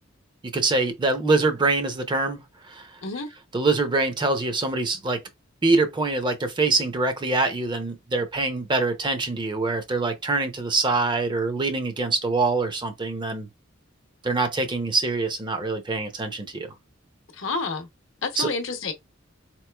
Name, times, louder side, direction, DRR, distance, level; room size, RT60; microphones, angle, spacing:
voice 1, 0.5-2.4 2.7-2.9 3.5-5.2 5.6-13.5 14.2-16.7 18.4-18.5, right 3 dB, 25° right, 0.5 m, -24 dB
voice 2, 17.3-17.9 18.2-18.9, left 4 dB, 70° left, 0.7 m, -29 dB
3.8 x 3.0 x 2.2 m
head